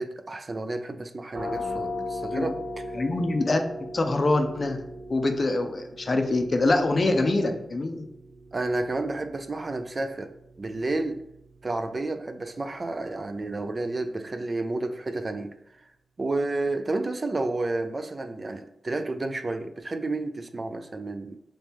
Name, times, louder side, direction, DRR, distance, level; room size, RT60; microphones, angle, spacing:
voice 1, 0.0-3.0 8.5-10.3 10.6-11.2 11.6-15.9 16.2-21.4, right 2 dB, 35° right, 8 dB, 0.3 m, -31 dB
sound 1, 1.3-12.8, left 1 dB, 75° right, 1.0 m, -39 dB
voice 2, 3.0-4.8 5.1-8.0, left 2 dB, 45° left, 5 dB, 0.5 m, -24 dB
3.1 x 2.9 x 3.5 m, 0.81 s
wide cardioid pair, 95°, 0 cm